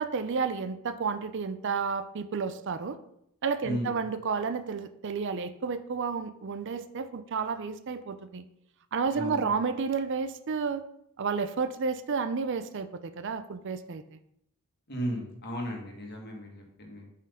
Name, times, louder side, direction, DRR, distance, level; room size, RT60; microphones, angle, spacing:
voice 1, 0.0-3.0 3.4-8.4 8.9-10.8 11.2-14.0, right 5 dB, 55° right, 11 dB, 0.5 m, -31 dB
voice 2, 9.1-9.5 14.9-17.0, equal, 45° left, 1 dB, 1.8 m, -35 dB
7.5 x 3.8 x 5.6 m, 0.75 s
head